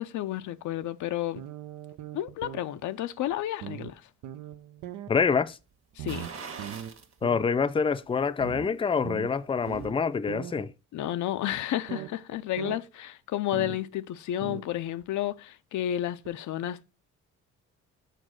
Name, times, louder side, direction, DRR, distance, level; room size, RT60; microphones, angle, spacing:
voice 1, 0.0-1.4 2.1-4.0 6.0-6.3 10.9-16.8, left 12 dB, 75° left, 0.6 m, -31 dB
sound 1, 1.4-2.6 3.3-3.4 3.6-3.9 4.2-5.1 6.0-7.0 7.2-7.4 8.4-10.0 10.3-10.5 11.9-12.1 12.6-12.8 13.5-13.8 14.4-14.7 15.0-15.1 16.2-16.3, right 11 dB, 85° right, 0.7 m, -39 dB
voice 2, 5.1-5.6 7.2-10.7, left 5 dB, 20° left, 0.5 m, -26 dB
sound 2, 6.1-7.1 7.6-7.7 9.2-10.0 10.3-10.4, right 5 dB, 50° right, 1.5 m, -42 dB
6.7 x 4.0 x 6.2 m
cardioid pair, 90°, 30 cm